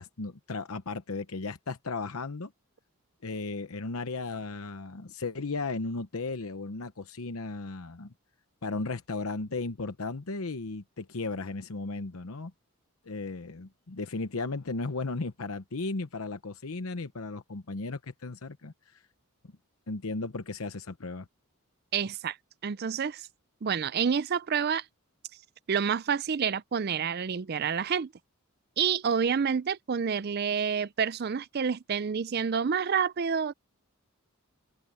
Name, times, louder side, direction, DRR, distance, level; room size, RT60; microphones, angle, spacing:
voice 1, 0.0-2.5 3.2-8.1 8.6-12.5 13.0-19.0 19.9-21.3, left 3 dB, 75° left, 0.9 m, -35 dB
voice 2, 21.9-22.4 22.6-23.2 23.6-24.8 25.7-28.1 28.8-33.5, right 6 dB, 45° right, 0.4 m, -28 dB
head